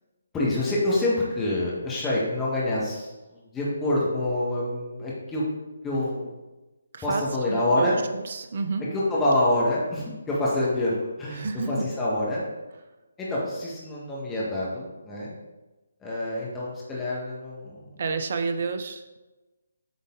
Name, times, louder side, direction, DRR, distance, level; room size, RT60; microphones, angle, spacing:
voice 1, 0.3-5.4 5.8-6.3 7.0-8.0 8.9-12.5 13.2-15.3 16.0-18.0, left 1 dB, 10° left, -7 dB, 1.5 m, -26 dB
voice 2, 6.9-8.8 11.3-11.9 18.0-19.2, right 4 dB, 45° right, 9 dB, 0.6 m, -30 dB
8.3 x 3.9 x 3.9 m, 1.1 s
figure-of-eight pair, 145°, 0 cm